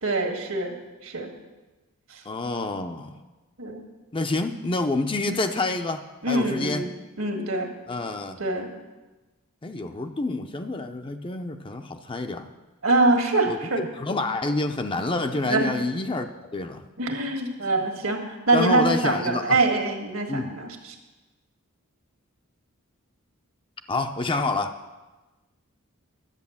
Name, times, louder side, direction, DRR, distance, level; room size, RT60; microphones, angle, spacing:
voice 1, 0.0-0.8 1.0-1.3 2.1-2.2 3.6-3.8 5.3-5.5 6.2-6.9 7.2-7.7 8.4-8.7 12.8-13.8 15.4-15.8 17.0-21.0, right 2 dB, 75° right, 4 dB, 1.7 m, -24 dB
voice 2, 2.3-3.2 4.1-6.0 6.3-6.8 7.9-8.4 9.6-12.5 13.5-16.3 16.5-16.8 18.5-19.6 20.3-20.6 23.9-24.8, left 2 dB, 25° left, 7 dB, 0.5 m, -28 dB
10.5 x 8.2 x 7.1 m, 1.2 s
head